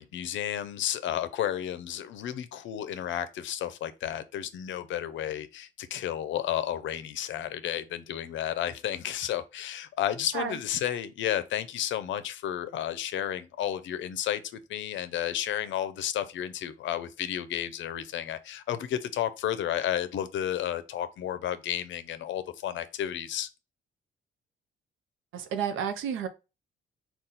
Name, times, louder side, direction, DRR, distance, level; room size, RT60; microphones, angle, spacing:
voice 1, 0.0-14.4 14.7-23.5, left 11 dB, 70° left, 0.5 m, -32 dB
voice 2, 25.3-26.3, right 8 dB, 85° right, 0.7 m, -31 dB
3.8 x 2.3 x 4.1 m
cardioid pair, 90°, 20 cm